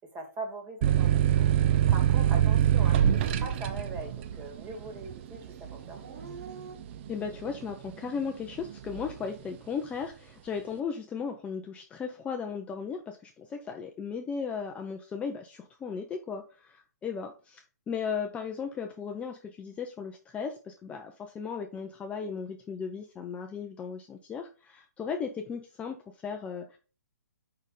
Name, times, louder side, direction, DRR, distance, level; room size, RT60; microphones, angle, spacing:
voice 1, 0.0-6.2, right 2 dB, 20° right, 4 dB, 2.1 m, -42 dB
sound 1, 0.8-8.1 8.5-9.2, right 10 dB, 40° right, 0.6 m, -25 dB
Dog / Siren, 2.4-2.5 3.0-4.4 4.7-6.8, right 4 dB, 60° right, 1.8 m, -48 dB
voice 2, 7.1-26.8, left 6 dB, 15° left, 4 dB, 0.6 m, -36 dB
6.2 x 5.3 x 3.8 m, 0.35 s
hypercardioid pair, 140°, 9 cm